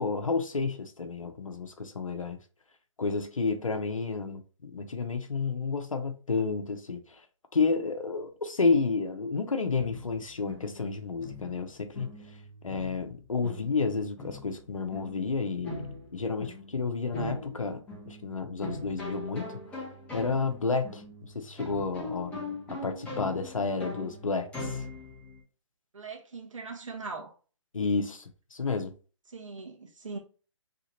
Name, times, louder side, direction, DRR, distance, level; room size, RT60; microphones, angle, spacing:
voice 1, 0.0-2.4 3.0-7.0 7.5-12.1 12.6-15.8 16.1-19.8 20.1-21.0 21.3-22.3 22.7-24.9 27.7-28.9, left 4 dB, 85° left, 1.0 m, -31 dB
sound 1, 9.7-25.4, left 2 dB, 5° left, 1.3 m, -42 dB
voice 2, 25.9-27.3 29.3-30.2, right 4 dB, 75° right, 1.5 m, -40 dB
3.8 x 3.3 x 3.0 m
figure-of-eight pair, 140°, 17 cm